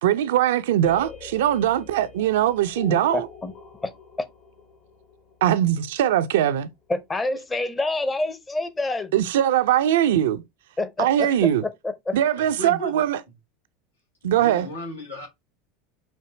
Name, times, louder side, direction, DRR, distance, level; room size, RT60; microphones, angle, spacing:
voice 1, 0.0-3.3 5.4-6.7 9.1-10.4 11.0-11.6 12.1-13.2 14.2-14.7, right 11 dB, 65° right, 0.4 m, -21 dB
sound 1, 0.8-6.6, left 5 dB, 50° left, 1.2 m, -43 dB
voice 2, 3.1-3.5 3.8-3.9 6.9-9.1 10.8-11.3 12.1-12.2, left 2 dB, 15° left, 0.7 m, -27 dB
voice 3, 12.4-13.1 14.2-15.3, left 1 dB, 85° left, 1.7 m, -36 dB
4.5 x 2.7 x 3.8 m
figure-of-eight pair, 80°, 0 cm